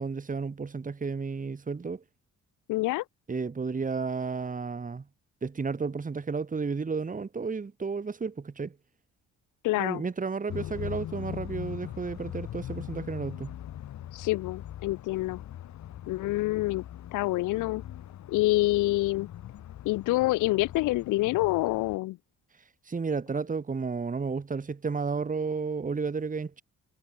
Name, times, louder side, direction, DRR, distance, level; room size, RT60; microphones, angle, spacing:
voice 1, 0.0-2.0 3.3-5.1 5.4-8.8 9.8-13.6 22.9-26.6, right 4 dB, 25° right, 2.0 m, -32 dB
voice 2, 2.7-3.0 9.6-10.0 14.1-15.4 16.1-16.8 17.1-17.8 18.3-19.3 19.8-22.2, left 19 dB, 90° left, 0.7 m, -27 dB
sound 1, 10.5-22.0, left 11 dB, 65° left, 1.9 m, -41 dB
cardioid pair, 90°, 30 cm